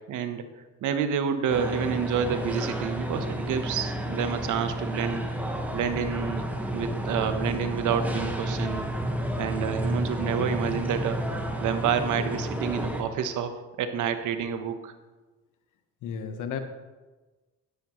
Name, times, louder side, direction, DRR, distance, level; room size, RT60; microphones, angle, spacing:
voice 1, 0.1-0.4 0.8-5.3 5.7-6.5 6.7-8.8 9.4-13.5 13.8-14.9, right 7 dB, 80° right, 9 dB, 1.0 m, -29 dB
sound 1, 1.5-13.0, equal, 5° right, 1.4 m, -31 dB
voice 2, 16.0-16.6, left 7 dB, 90° left, 8 dB, 1.1 m, -34 dB
12.0 x 10.5 x 3.1 m, 1.2 s
cardioid pair, 90°, 30 cm